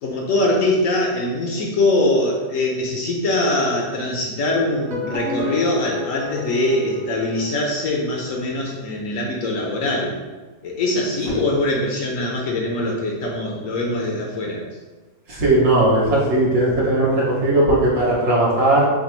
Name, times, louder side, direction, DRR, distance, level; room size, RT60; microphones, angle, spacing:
voice 1, 0.0-10.1 10.6-14.6, left 2 dB, 70° left, -1 dB, 0.8 m, -22 dB
sound 1, 4.7-7.8, left 4 dB, 45° right, 0.9 m, -31 dB
voice 2, 15.3-18.9, right 1 dB, 65° right, -6 dB, 1.3 m, -17 dB
3.3 x 2.2 x 4.2 m, 1.3 s
omnidirectional pair, 1.7 m